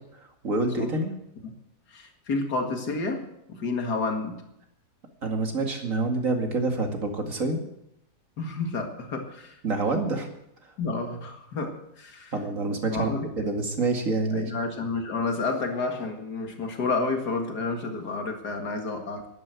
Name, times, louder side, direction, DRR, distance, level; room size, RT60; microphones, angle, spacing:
voice 1, 0.4-1.1 5.2-7.6 9.6-10.3 12.3-13.1 13.4-14.5, right 3 dB, 55° right, 3 dB, 2.6 m, -27 dB
voice 2, 1.9-4.4 8.4-9.6 10.8-12.3 12.9-13.5 14.3-19.3, left 3 dB, 85° left, 4 dB, 2.6 m, -30 dB
12.0 x 11.0 x 8.2 m, 0.79 s
omnidirectional pair, 1.7 m